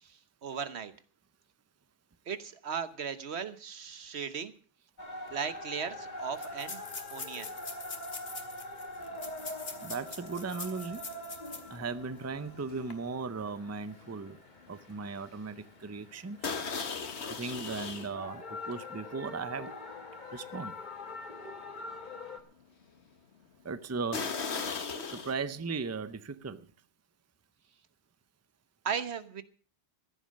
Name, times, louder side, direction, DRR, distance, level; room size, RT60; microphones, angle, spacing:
voice 1, 0.4-0.9 2.3-4.5 5.3-6.8 7.1-7.5 28.8-29.4, right 6 dB, 80° right, 12 dB, 1.3 m, -36 dB
sound 1, 5.0-22.4, left 2 dB, 45° left, 1.8 m, -45 dB
sound 2, 5.3-5.4 5.6-5.7 6.3-11.8 12.2-12.3 12.8-12.9, left 4 dB, 70° left, 2.1 m, -44 dB
sound 3, 9.2-9.5 9.8-14.4 14.7-15.0 15.4-15.5 16.4-18.1 18.7-18.8 19.4-19.5 20.0-20.1 24.1-25.4, left 5 dB, 85° left, 1.6 m, -38 dB
voice 2, 9.8-11.0 11.7-14.4 14.7-16.5 17.3-19.7 20.3-20.8 23.6-24.2 25.0-26.7, right 4 dB, 20° right, 14 dB, 0.6 m, -37 dB
15.0 x 10.5 x 6.4 m, 0.41 s
omnidirectional pair, 1.1 m